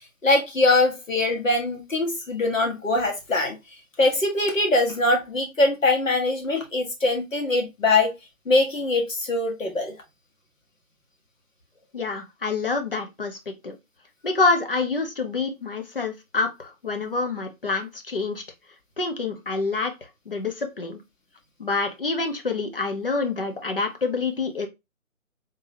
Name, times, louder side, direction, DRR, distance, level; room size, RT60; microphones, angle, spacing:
voice 1, 0.2-3.6 4.0-8.1 8.5-9.9, left 2 dB, 65° left, 1.2 m, -22 dB
voice 2, 11.9-13.8 14.2-18.4 19.0-19.9 20.3-21.0 21.6-24.7, left 3 dB, 40° left, 0.7 m, -27 dB
3.7 x 2.8 x 2.8 m
figure-of-eight pair, 150°, 43 cm